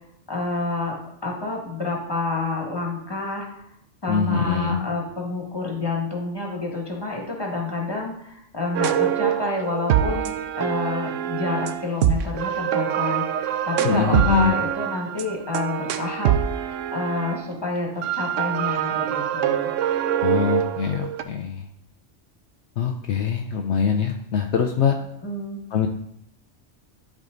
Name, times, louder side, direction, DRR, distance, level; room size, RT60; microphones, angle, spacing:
voice 1, 0.3-1.0 1.2-3.5 4.0-19.7 25.2-25.6, left 3 dB, 20° left, 0 dB, 1.9 m, -28 dB
voice 2, 4.1-4.8 13.8-14.5 20.2-21.6 22.8-24.9 25.7-25.9, left 7 dB, 70° left, 4 dB, 0.9 m, -23 dB
sound 1, 8.7-17.5 18.0-21.2, right 10 dB, 85° right, 1.0 m, -24 dB
11.0 x 4.9 x 3.9 m, 0.74 s
omnidirectional pair, 1.3 m